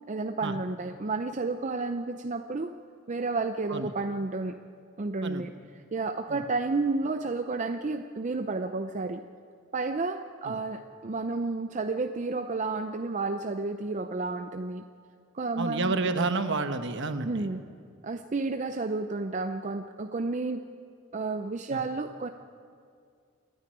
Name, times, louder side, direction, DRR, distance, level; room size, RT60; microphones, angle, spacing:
voice 1, 0.1-2.7 3.1-4.6 5.0-5.5 5.9-9.2 9.7-14.8 15.3-15.9 17.2-17.6 18.0-20.6 21.1-22.3, right 3 dB, 35° right, 7 dB, 0.5 m, -31 dB
voice 2, 15.6-17.5 21.7-21.8, right 3 dB, 55° right, 9 dB, 1.1 m, -30 dB
27.0 x 9.6 x 9.9 m, 2.3 s
head